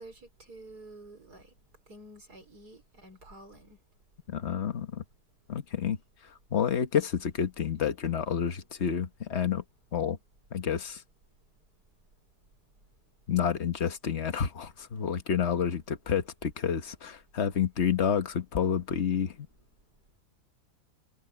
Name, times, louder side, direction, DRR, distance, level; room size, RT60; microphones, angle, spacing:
voice 1, 0.0-1.5 1.9-3.8, right 2 dB, 65° right, 5.7 m, -49 dB
voice 2, 4.3-5.0 5.5-6.0 6.5-9.6 9.9-10.2 10.5-11.0 13.3-19.5, left 8 dB, 45° left, 1.4 m, -29 dB
omnidirectional pair, 1.8 m